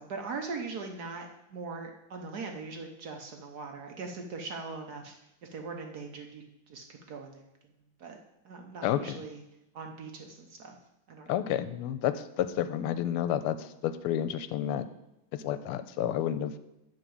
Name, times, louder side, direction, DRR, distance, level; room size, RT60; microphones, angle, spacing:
voice 1, 0.0-5.1 5.5-7.5 8.0-8.2 8.4-9.4 9.7-10.8 11.1-11.4, right 4 dB, 55° right, 3 dB, 1.2 m, -40 dB
voice 2, 8.8-9.2 11.3-14.9 15.3-16.5, left 10 dB, 85° left, 13 dB, 1.5 m, -30 dB
10.5 x 3.9 x 7.1 m, 0.87 s
omnidirectional pair, 2.4 m